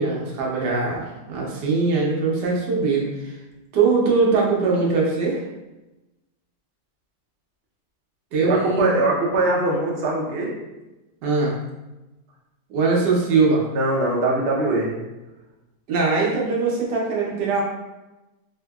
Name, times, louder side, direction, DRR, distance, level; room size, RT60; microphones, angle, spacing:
voice 1, 0.0-3.4 3.7-5.4 8.3-8.9 11.2-11.6 12.7-13.7 15.9-17.6, right 4 dB, 75° right, -2 dB, 1.3 m, -21 dB
voice 2, 8.4-10.5 13.7-15.0, right 2 dB, 55° right, -3 dB, 0.7 m, -22 dB
3.6 x 2.7 x 2.3 m, 1.0 s
omnidirectional pair, 1.9 m